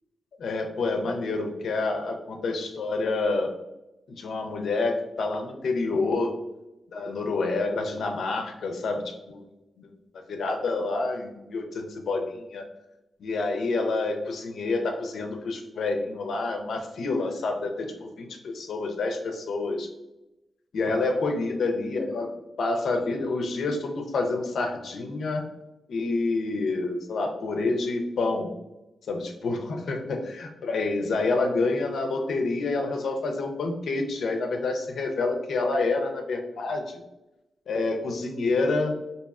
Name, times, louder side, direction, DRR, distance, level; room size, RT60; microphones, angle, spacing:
voice 1, 0.4-3.5 4.1-6.3 6.9-9.4 9.8-9.9 10.3-12.7 13.2-19.9 20.7-22.3 22.6-25.4 25.9-28.5 29.1-37.0 37.7-38.9, left 3 dB, 70° left, 3 dB, 0.5 m, -28 dB
4.1 x 2.7 x 2.3 m, 0.96 s
wide cardioid pair, 160°, 0 cm